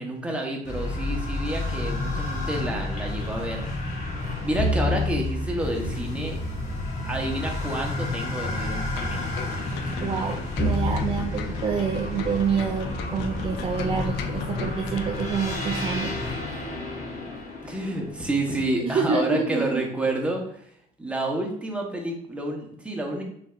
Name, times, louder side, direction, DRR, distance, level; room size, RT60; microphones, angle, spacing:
voice 1, 0.0-3.6 4.4-6.4 7.0-9.2 17.6-20.7 21.0-23.2, right 1 dB, 5° right, 0 dB, 1.1 m, -29 dB
sound 1, 0.7-18.6, left 2 dB, 45° left, 1.5 m, -30 dB
sound 2, 8.9-15.2 15.5-15.7, left 6 dB, 85° left, 0.5 m, -38 dB
voice 2, 10.0-16.4 18.8-19.8, right 6 dB, 30° right, 2 dB, 0.5 m, -27 dB
6.2 x 3.3 x 2.5 m, 0.68 s
cardioid pair, 110°, 17 cm